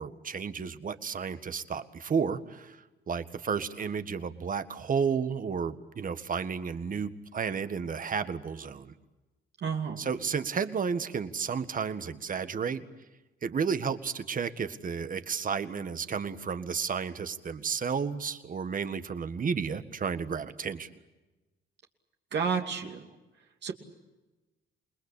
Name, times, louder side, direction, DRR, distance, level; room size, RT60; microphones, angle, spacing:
voice 1, 0.0-2.8 3.1-8.9 10.0-12.9 13.4-20.9, right 6 dB, 45° right, 11 dB, 1.8 m, -32 dB
voice 2, 9.6-10.0 22.3-23.0 23.6-23.7, right 6 dB, 60° right, 3 dB, 2.7 m, -30 dB
28.5 x 20.5 x 8.6 m, 1.1 s
cardioid pair, 90°, 20 cm